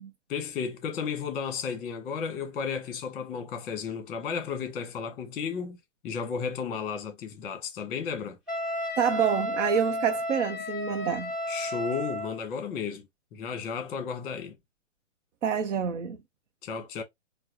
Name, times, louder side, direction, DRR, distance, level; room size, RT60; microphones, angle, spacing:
voice 1, 0.3-5.8 6.0-8.4 11.5-13.0 13.3-14.5 16.6-17.0, left 6 dB, 20° left, 1.3 m, -33 dB
Wind instrument woodwind instrument, 8.5-12.4, left 1 dB, ahead, 0.4 m, -32 dB
voice 2, 9.0-11.3 15.4-16.2, right 7 dB, 70° right, 0.8 m, -27 dB
4.6 x 2.2 x 2.9 m
hypercardioid pair, 140°, 37 cm